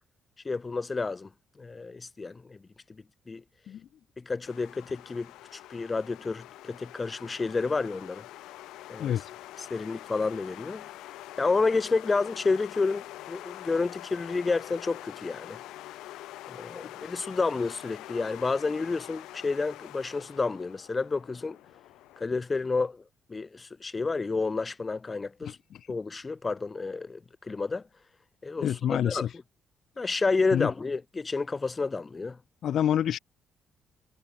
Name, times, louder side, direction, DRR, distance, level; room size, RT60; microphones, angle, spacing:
voice 1, 0.4-1.3 1.6-2.6 3.3-3.4 4.2-8.2 8.9-9.2 9.6-10.8 11.4-15.6 16.5-21.6 22.2-23.0 23.3-25.6 25.9-27.8 28.4-29.3 30.0-32.4, left 4 dB, 30° left, 0.9 m, -30 dB
sound 1, 4.5-22.2, left 15 dB, 85° left, 2.6 m, -45 dB
voice 2, 25.4-25.9 28.6-29.3 30.5-30.7 32.6-33.2, left 10 dB, 70° left, 0.7 m, -28 dB
cardioid pair, 80°, 0 cm